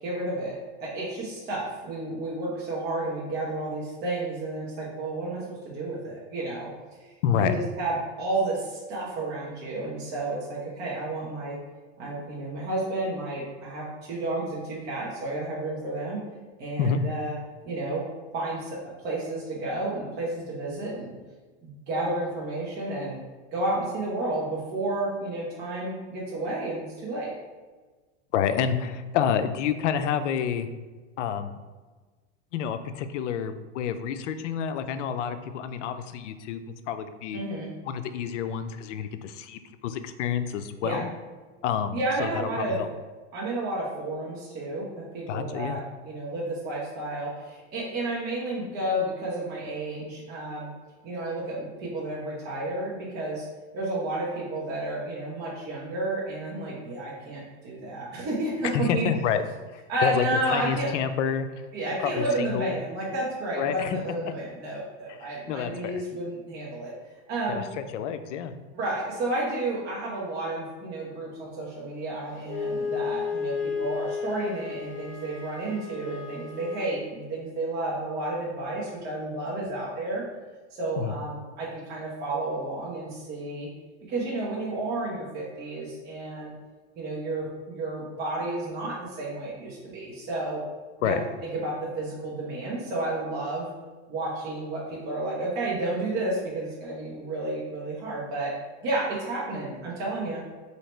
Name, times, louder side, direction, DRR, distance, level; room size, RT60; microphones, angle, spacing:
voice 1, 0.0-6.7 7.0-11.6 12.0-16.2 16.6-17.4 17.6-18.0 18.3-18.8 19.0-21.2 21.6-23.2 23.5-27.3 37.3-37.7 40.8-41.0 41.9-42.8 43.3-50.7 51.0-53.5 53.7-59.1 59.9-60.9 61.7-66.9 67.3-67.6 68.7-80.2 80.8-83.7 84.1-86.5 87.0-90.6 91.0-91.2 91.4-93.7 94.1-98.5 98.8-100.4, right 2 dB, 30° right, -6 dB, 0.9 m, -31 dB
voice 2, 7.2-7.6 16.8-17.0 28.3-30.7 31.2-31.5 32.5-36.6 36.9-37.4 37.8-41.1 41.6-42.3 42.6-42.9 45.3-45.8 58.7-59.4 59.7-61.5 62.0-62.8 63.6-64.0 65.2-66.0 67.5-68.5 81.0-81.1 91.0-91.2, left 8 dB, 90° left, 10 dB, 0.5 m, -28 dB
Wind instrument woodwind instrument, 72.5-76.9, left 5 dB, 65° left, 0.9 m, -33 dB
3.2 x 2.8 x 4.3 m, 1.3 s
supercardioid pair, 145°, 35 cm